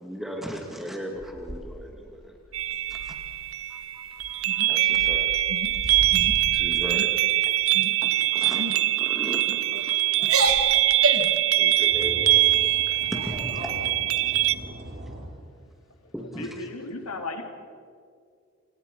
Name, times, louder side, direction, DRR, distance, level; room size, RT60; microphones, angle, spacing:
voice 1, 0.0-2.4 2.7-3.1 4.7-5.4 5.8-7.5 8.0-10.0 11.6-12.3 13.1-13.7 14.2-14.3 16.1-16.7, equal, ahead, 1 dB, 2.2 m, -37 dB
sound 1, 1.2-2.1 2.4-3.4 4.0-4.5 4.9-7.3 10.3-11.4 12.5-12.8 13.1-13.5 14.6-14.7, equal, 40° right, 2.3 m, -39 dB
sound 2, 2.5-14.5, right 15 dB, 70° right, 0.7 m, -23 dB
voice 2, 3.7-4.7 9.9-10.0 16.3-17.4, left 2 dB, 90° left, 5 dB, 2.7 m, -38 dB
sound 3, 4.5-5.1 5.5-5.7 6.1-6.4 6.8-7.1 7.7-8.1 8.6-8.8 9.5-9.8 10.2-11.4, right 3 dB, 90° right, 2.6 m, -28 dB
voice 3, 11.9-13.9 14.2-15.3, right 1 dB, 55° right, 0 dB, 5.3 m, -39 dB
28.5 x 26.5 x 5.4 m, 2.2 s
head